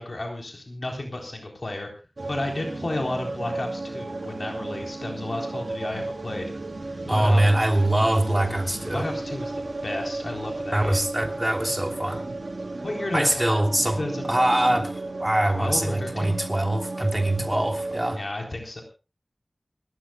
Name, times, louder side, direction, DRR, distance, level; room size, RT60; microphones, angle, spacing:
voice 1, 0.0-1.9 2.3-6.5 7.1-7.6 8.9-11.1 12.8-13.6 14.0-14.4 15.5-16.4 18.1-18.8, left 1 dB, 65° left, 2 dB, 3.8 m, -32 dB
sound 1, 2.2-18.2, right 2 dB, 75° right, 3.8 m, -34 dB
voice 2, 7.1-9.1 10.7-12.2 13.1-14.0 14.3-18.2, right 1 dB, 20° right, 4 dB, 3.1 m, -23 dB
29.0 x 14.0 x 2.3 m, 0.32 s
wide cardioid pair, 60°, 0 cm